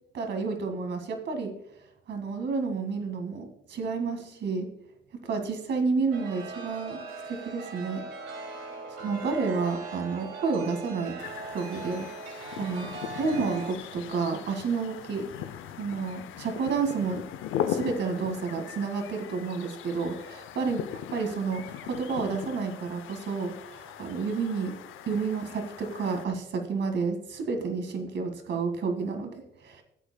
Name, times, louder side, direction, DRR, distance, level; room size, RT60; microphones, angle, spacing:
voice 1, 0.1-1.5 2.1-4.7 5.2-7.0 7.3-8.0 8.9-11.2 11.5-12.1 12.6-12.9 13.2-15.3 15.8-17.2 17.7-20.8 21.1-24.8 25.1-29.8, right 4 dB, 65° right, 5 dB, 1.9 m, -30 dB
Chime, 6.1-13.7, right 4 dB, 80° right, 1.8 m, -40 dB
sound 1, 11.2-26.2, left 10 dB, 85° left, 0.6 m, -39 dB
15.0 x 8.1 x 2.2 m, 0.76 s
cardioid pair, 90°, 20 cm